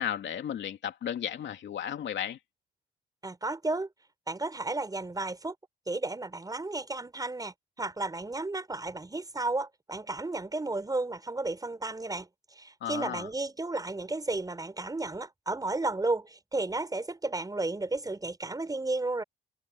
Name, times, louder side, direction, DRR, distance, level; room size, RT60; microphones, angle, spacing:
voice 1, 0.0-2.4 12.8-13.3, left 9 dB, 65° left, 2.8 m, -34 dB
voice 2, 3.2-3.9 4.3-5.6 5.9-12.3 12.6-19.2, right 2 dB, 20° right, 5.4 m, -33 dB
cardioid pair, 90°, 20 cm